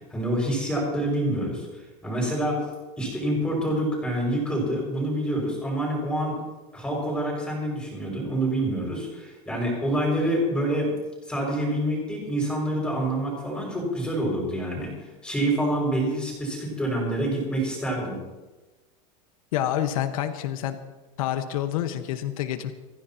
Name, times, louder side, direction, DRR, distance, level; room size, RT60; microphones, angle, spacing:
voice 1, 0.1-2.6 3.0-6.4 6.7-10.9 11.3-14.9 15.2-18.2, right 1 dB, 5° left, -2 dB, 6.2 m, -27 dB
voice 2, 19.5-20.8 21.2-22.7, left 11 dB, 85° left, 7 dB, 1.4 m, -27 dB
25.5 x 16.0 x 3.0 m, 1.1 s
supercardioid pair, 165°, 18 cm